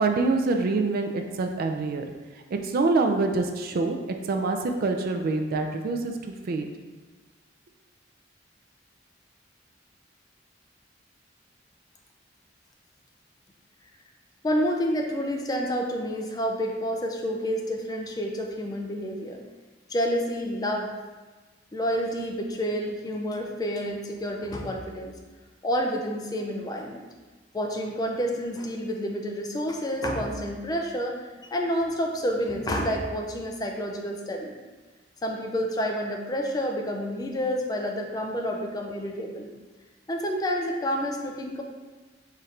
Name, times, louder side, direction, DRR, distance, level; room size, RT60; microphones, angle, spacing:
voice 1, 0.0-2.0 2.5-4.0 4.3-6.7, right 3 dB, 50° right, 5 dB, 0.3 m, -25 dB
voice 2, 14.4-19.4 19.9-20.9 21.7-25.1 25.6-27.0 27.5-34.5 35.2-39.5 40.1-41.6, equal, 20° left, 1 dB, 0.4 m, -29 dB
4.3 x 2.5 x 3.2 m, 1.3 s
head